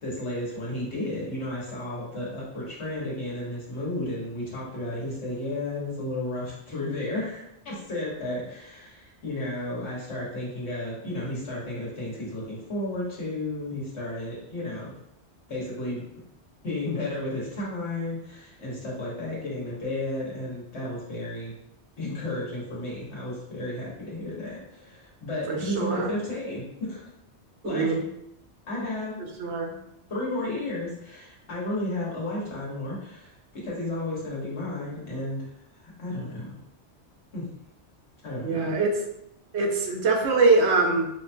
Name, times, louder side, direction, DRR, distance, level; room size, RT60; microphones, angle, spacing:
voice 1, 0.0-14.9 15.5-16.0 16.6-21.5 22.0-27.1 27.6-27.9 28.7-29.2 30.1-35.4 35.7-36.6 37.3-37.5 38.2-38.8, left 1 dB, 85° left, -5 dB, 1.7 m, -33 dB
voice 2, 25.5-26.1 27.6-28.0 29.4-29.8 38.4-39.0 39.5-41.1, right 3 dB, 80° right, 1 dB, 1.0 m, -23 dB
5.7 x 2.7 x 2.2 m, 0.80 s
omnidirectional pair, 1.1 m